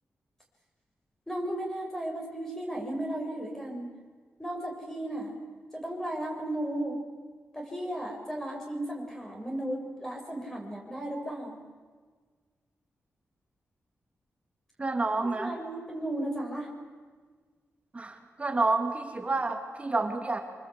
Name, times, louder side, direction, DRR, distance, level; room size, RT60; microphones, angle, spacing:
voice 1, 1.3-3.9 4.4-5.4 5.7-7.0 7.5-11.6 15.2-16.7, right 1 dB, 10° left, 0 dB, 7.0 m, -35 dB
voice 2, 14.8-15.5 17.9-20.4, right 3 dB, 25° right, 3 dB, 2.8 m, -29 dB
27.0 x 24.5 x 8.4 m, 1.5 s
wide cardioid pair, 120°, 5 cm